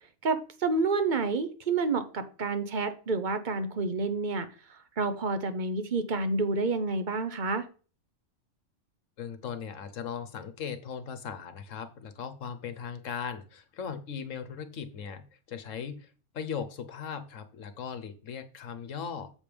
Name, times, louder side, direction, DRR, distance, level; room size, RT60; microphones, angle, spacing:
voice 1, 0.2-4.5 5.0-7.6, right 3 dB, 40° right, 10 dB, 0.9 m, -29 dB
voice 2, 9.2-19.3, left 7 dB, 65° left, 10 dB, 1.3 m, -38 dB
7.4 x 5.2 x 5.2 m, 0.38 s
omnidirectional pair, 1.4 m